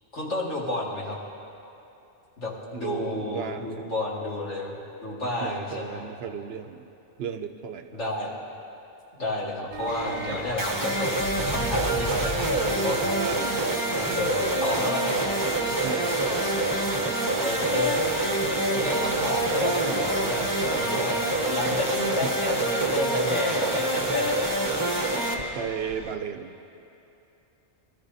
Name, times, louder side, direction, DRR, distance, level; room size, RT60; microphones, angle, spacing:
voice 1, 0.1-1.2 2.4-4.8 5.0-6.1 7.9-8.3 9.2-13.2 14.0-15.1 17.4-18.0 18.7-24.6, left 2 dB, 90° left, -5 dB, 2.4 m, -31 dB
voice 2, 2.7-3.9 5.4-6.8 7.2-7.9 13.2-13.7 15.8-16.6 22.2-22.4 25.5-26.5, right 7 dB, 65° right, 8 dB, 0.8 m, -35 dB
sound 1, 9.7-21.4, right 8 dB, 90° right, 1.0 m, -40 dB
sound 2, 9.9-26.2, left 3 dB, 35° left, 0.5 m, -36 dB
sound 3, 10.6-25.3, right 2 dB, 20° right, 0.8 m, -26 dB
21.0 x 13.0 x 2.7 m, 2.8 s
omnidirectional pair, 1.2 m